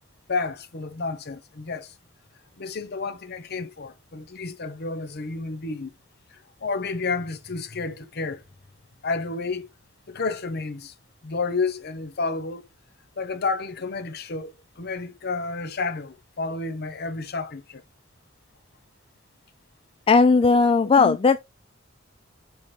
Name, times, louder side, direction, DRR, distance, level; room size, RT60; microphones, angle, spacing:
voice 1, 0.3-1.9 2.6-5.9 6.3-8.4 9.0-9.7 10.1-10.9 11.2-12.7 13.2-17.8 21.0-21.2, left 4 dB, 55° left, 0.8 m, -30 dB
voice 2, 20.1-21.4, left 4 dB, 30° left, 0.3 m, -17 dB
7.0 x 4.3 x 3.2 m
head